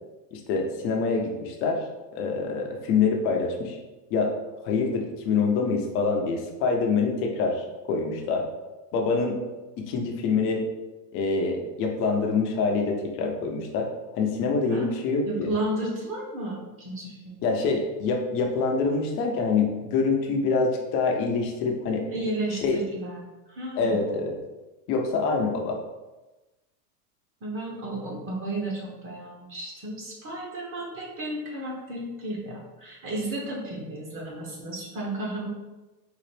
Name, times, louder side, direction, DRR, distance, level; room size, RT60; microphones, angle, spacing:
voice 1, 0.3-1.8 2.1-3.8 4.1-4.3 4.6-8.4 8.9-9.4 9.8-10.6 11.1-13.9 14.1-15.5 17.4-22.0 22.5-22.8 23.8-24.4 24.9-25.8, left 4 dB, 30° left, 2 dB, 0.4 m, -25 dB
voice 2, 15.3-17.4 22.1-24.0 27.4-35.5, right 1 dB, 25° right, -3 dB, 0.9 m, -33 dB
3.9 x 2.5 x 3.2 m, 1.1 s
supercardioid pair, 130°, 49 cm